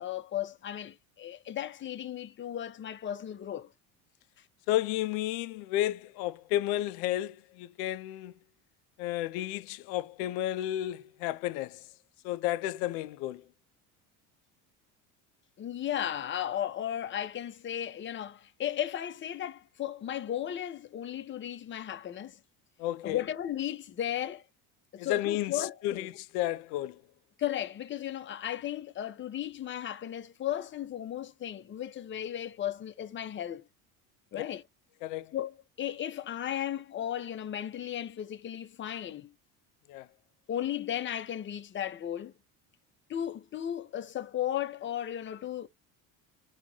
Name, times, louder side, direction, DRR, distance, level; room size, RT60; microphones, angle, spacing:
voice 1, 0.0-3.7 15.6-22.4 23.0-24.4 24.9-26.1 27.4-33.6 34.3-34.6 35.3-39.3 40.5-42.3 43.1-45.7, left 11 dB, 30° left, 0.5 m, -35 dB
voice 2, 4.7-8.3 9.0-11.8 12.2-13.4 22.8-23.2 25.0-27.0 35.0-35.3 39.9-40.1, left 14 dB, 80° left, 0.5 m, -32 dB
4.7 x 2.1 x 3.7 m
supercardioid pair, 95°, 38 cm